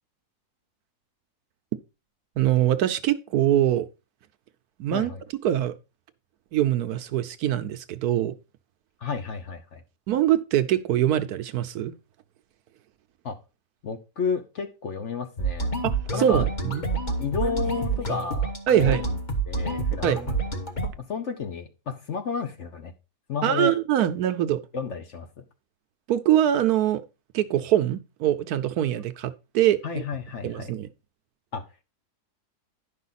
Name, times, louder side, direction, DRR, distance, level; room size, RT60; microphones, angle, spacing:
voice 1, 2.4-3.9 4.8-5.1 5.4-5.7 6.5-8.3 10.1-11.9 15.8-16.8 18.7-19.0 20.0-20.2 23.4-24.6 26.1-27.0 27.3-30.0 30.4-30.9, right 11 dB, 70° right, 1.1 m, -23 dB
voice 2, 4.9-5.2 9.0-9.8 13.2-13.4 13.8-15.7 16.1-16.5 17.2-19.1 19.5-20.4 21.0-22.9 23.3-23.7 24.7-25.4 29.8-30.7 31.5-31.6, left 5 dB, 50° left, 1.1 m, -31 dB
sound 1, 15.4-20.9, right 3 dB, 30° left, 1.2 m, -28 dB
10.5 x 5.5 x 4.0 m
omnidirectional pair, 1.7 m